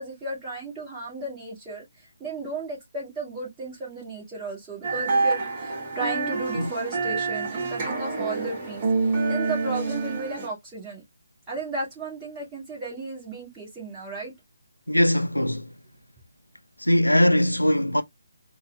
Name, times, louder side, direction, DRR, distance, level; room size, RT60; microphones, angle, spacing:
voice 1, 0.0-11.0 11.5-14.3, right 3 dB, 10° right, 2.1 m, -34 dB
sound 1, 4.8-10.5, right 3 dB, 25° right, 1.2 m, -27 dB
voice 2, 14.9-15.8 16.8-18.0, left 1 dB, 85° left, 0.5 m, -21 dB
4.1 x 2.4 x 3.1 m
figure-of-eight pair, 145°, 0 cm